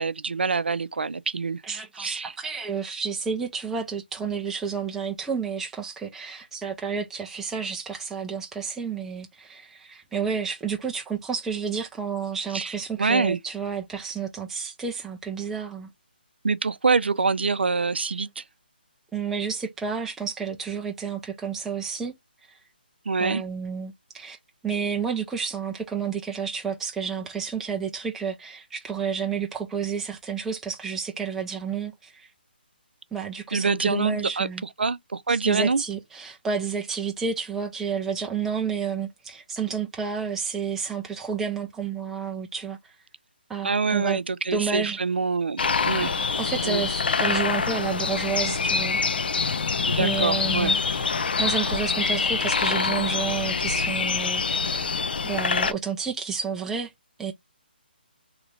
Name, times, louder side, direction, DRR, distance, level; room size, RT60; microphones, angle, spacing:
voice 1, 0.0-1.6 2.0-2.3 12.5-13.4 16.4-18.4 23.1-23.4 33.5-34.5 34.8-35.8 43.6-46.1 46.6-46.8 49.9-50.7, right 4 dB, 85° right, 0.4 m, -25 dB
voice 2, 1.6-15.9 19.1-22.2 22.5-22.6 23.2-24.4 24.6-32.3 33.1-34.6 35.3-42.9 43.5-44.2 44.5-45.0 46.4-49.0 49.9-50.8 51.4-54.9 55.2-56.9 57.2-57.3, right 6 dB, 5° right, 0.4 m, -30 dB
sound 1, 45.6-55.7, left 5 dB, 65° left, 0.5 m, -25 dB
2.9 x 2.5 x 3.2 m
hypercardioid pair, 160°, 6 cm